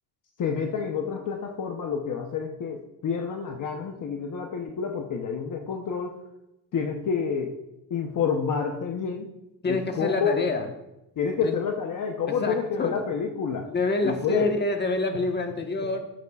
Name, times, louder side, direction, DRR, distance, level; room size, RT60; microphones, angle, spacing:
voice 1, 0.4-6.2 6.7-7.6 7.9-9.3 9.6-10.4 11.2-13.7 14.0-14.5, left 6 dB, 50° left, 3 dB, 0.9 m, -28 dB
voice 2, 9.6-10.7 11.4-11.5 12.3-12.9 13.7-16.0, left 2 dB, 25° left, 4 dB, 1.3 m, -27 dB
15.0 x 8.3 x 2.4 m, 0.91 s
cardioid pair, 120°, 41 cm